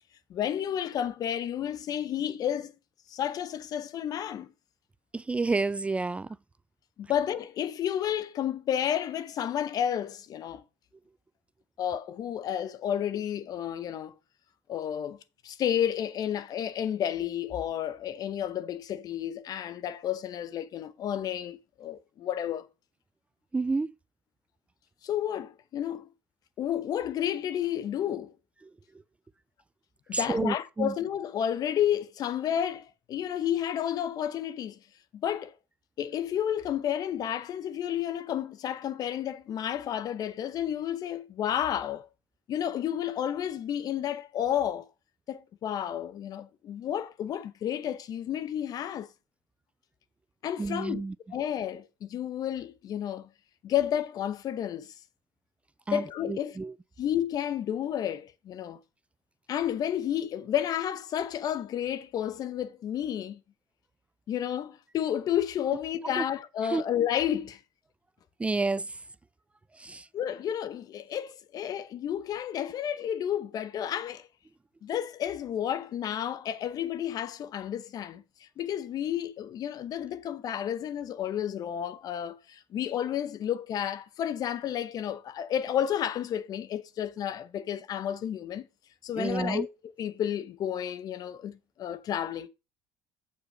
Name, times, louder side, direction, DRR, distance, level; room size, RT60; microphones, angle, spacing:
voice 1, 0.3-2.7 3.1-4.5 7.0-10.6 11.8-14.1 14.7-15.2 15.4-22.7 25.0-26.1 26.6-28.3 30.1-34.8 35.1-35.5 36.0-42.1 42.5-44.8 45.3-49.1 50.4-51.0 51.3-53.3 53.6-54.9 55.9-56.6 57.0-58.8 59.5-63.4 64.3-67.6 70.1-74.3 74.8-88.7 89.0-89.7 90.0-92.5, left 10 dB, 55° left, 0.9 m, -31 dB
voice 2, 5.1-6.4 23.5-23.9 30.1-30.9 50.6-51.2 55.9-56.7 66.2-66.3 66.6-66.8 68.4-69.0 69.7-70.1 89.2-89.7, right 3 dB, 15° right, 0.4 m, -30 dB
8.3 x 5.3 x 5.5 m
supercardioid pair, 85°, 8 cm